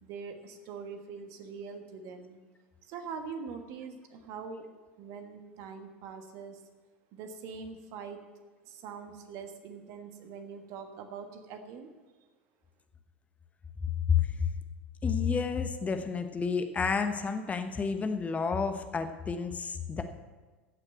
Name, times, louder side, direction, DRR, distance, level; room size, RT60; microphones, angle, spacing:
voice 1, 0.0-2.4 2.8-4.7 5.0-6.6 7.1-8.2 8.6-11.9, right 5 dB, 50° right, 6 dB, 1.5 m, -43 dB
voice 2, 14.1-14.5 15.0-20.0, left 6 dB, 20° left, 7 dB, 1.0 m, -30 dB
14.0 x 6.3 x 7.8 m, 1.3 s
figure-of-eight pair, 80°, 7 cm